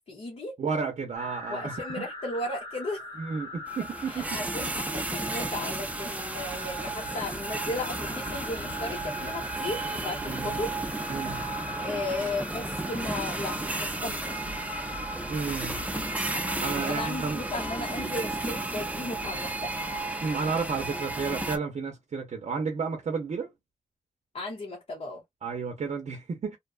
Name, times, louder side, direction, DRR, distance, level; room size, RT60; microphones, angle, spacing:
voice 1, 0.1-0.5 1.5-3.0 4.1-10.7 11.7-14.4 16.6-19.7 24.3-25.2, left 2 dB, 50° left, 0.9 m, -35 dB
voice 2, 0.6-2.1 3.2-4.4 10.2-10.6 11.1-11.4 15.3-15.8 16.6-17.4 20.2-23.5 25.4-26.6, right 5 dB, 55° right, 0.6 m, -32 dB
sound 1, 1.1-20.6, left 2 dB, 30° left, 0.9 m, -43 dB
sound 2, 3.7-21.6, right 2 dB, 10° right, 0.4 m, -33 dB
2.7 x 2.2 x 2.3 m
wide cardioid pair, 155°, 14 cm